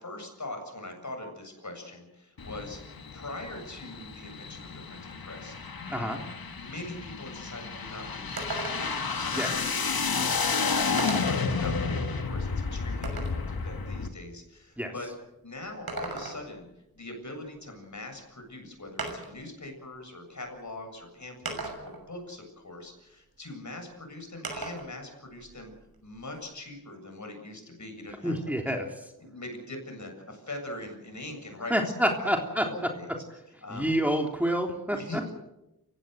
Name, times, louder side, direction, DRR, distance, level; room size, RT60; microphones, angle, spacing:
voice 1, 0.0-2.8 3.1-6.3 6.6-8.4 8.6-15.1 15.4-16.7 17.0-25.7 26.0-28.3 28.6-28.7 29.2-31.7 32.2-33.1 33.6-34.0 34.9-35.3, left 2 dB, 50° left, 4 dB, 7.6 m, -42 dB
sound 1, 2.4-14.1, left 4 dB, 75° left, 2.0 m, -31 dB
sound 2, 7.4-7.5 7.9-8.0 8.4-9.1 10.2-10.3 11.0-11.5 12.0-13.4 15.7-16.6 18.1-18.2 19.0-19.4 20.4-20.5 21.5-22.1 24.4-24.9 25.3-26.4, right 3 dB, 80° right, 6.3 m, -37 dB
voice 2, 28.2-28.9 31.7-32.7 33.7-35.2, equal, 5° right, 2 dB, 3.5 m, -27 dB
29.0 x 16.5 x 8.0 m, 0.91 s
cardioid pair, 50°, 36 cm